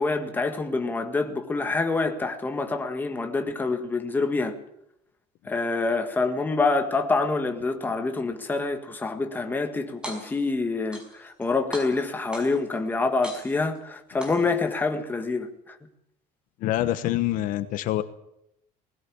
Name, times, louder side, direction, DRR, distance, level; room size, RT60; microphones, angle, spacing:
voice 1, 0.0-4.6 5.5-15.8, left 3 dB, 10° left, 1.7 m, -26 dB
sound 1, 9.9-10.5 10.9-11.4 11.7-12.7 13.2-13.8 14.2-14.8, right 1 dB, 5° right, 5.5 m, -39 dB
voice 2, 16.6-18.0, left 14 dB, 55° left, 1.2 m, -25 dB
20.0 x 16.0 x 8.6 m
cardioid pair, 170°, 16 cm